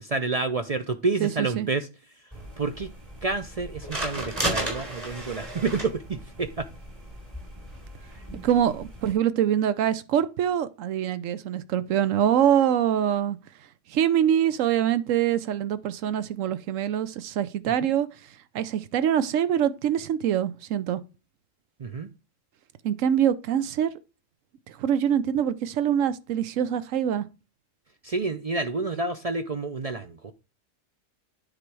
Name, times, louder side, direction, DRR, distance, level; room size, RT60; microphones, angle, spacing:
voice 1, 0.0-1.9 2.6-2.9 3.2-6.7 21.8-22.1 28.0-30.3, right 3 dB, 50° right, 0.4 m, -29 dB
voice 2, 1.2-1.7 8.4-13.4 13.9-18.1 18.5-21.0 22.8-23.9 24.7-27.3, right 9 dB, 85° right, 1.1 m, -24 dB
sound 1, 2.3-9.1, right 1 dB, 20° right, 3.8 m, -35 dB
9.8 x 4.1 x 4.7 m
omnidirectional pair, 1.3 m